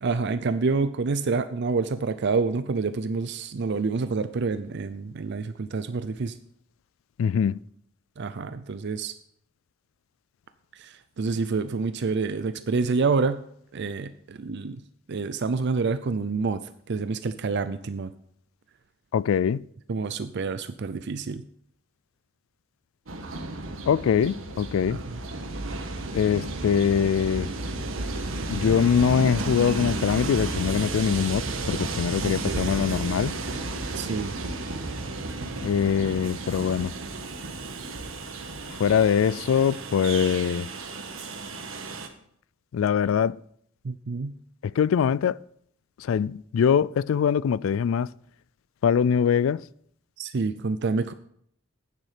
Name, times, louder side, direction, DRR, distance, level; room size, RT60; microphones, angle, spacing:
voice 1, 0.0-6.3 8.2-9.1 10.8-13.4 13.7-14.8 15.1-16.6 16.9-18.1 19.9-21.4 24.9-25.0 32.2-32.7 34.0-34.3 43.8-44.3 50.2-51.1, right 4 dB, 60° right, 0.5 m, -27 dB
voice 2, 7.2-7.6 19.1-19.7 23.8-25.0 26.1-27.5 28.5-33.3 35.6-36.9 38.7-40.7 42.7-43.4 44.6-45.4 46.0-48.1 48.8-49.6, left 7 dB, 80° left, 0.3 m, -23 dB
Train, 23.1-42.1, right 2 dB, 90° right, 1.5 m, -33 dB
10.5 x 9.3 x 5.0 m
head